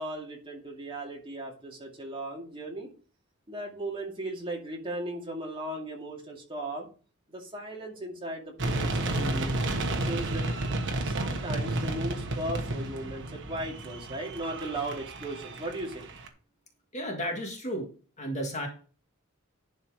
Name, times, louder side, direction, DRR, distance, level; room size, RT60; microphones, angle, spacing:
voice 1, 0.0-2.9 3.5-6.9 7.3-10.5 11.0-16.1, right 1 dB, 25° right, -1 dB, 2.3 m, -37 dB
sound 1, 8.6-16.3, right 2 dB, 60° right, 1.3 m, -32 dB
voice 2, 16.9-17.9 18.2-18.7, equal, 35° left, 3 dB, 1.7 m, -33 dB
11.0 x 4.4 x 4.8 m, 0.38 s
head